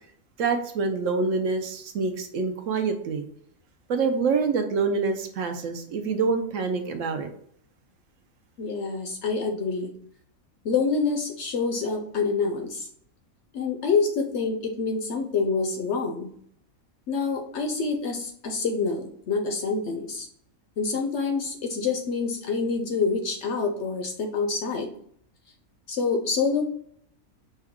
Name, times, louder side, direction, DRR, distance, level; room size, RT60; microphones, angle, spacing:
voice 1, 0.4-3.3 3.9-7.3, right 4 dB, 70° right, 6 dB, 0.9 m, -26 dB
voice 2, 8.6-9.9 10.6-12.9 13.5-16.3 17.1-20.3 20.8-24.9 25.9-26.6, left 4 dB, 65° left, 4 dB, 0.8 m, -27 dB
5.3 x 2.3 x 3.5 m, 0.65 s
omnidirectional pair, 1.5 m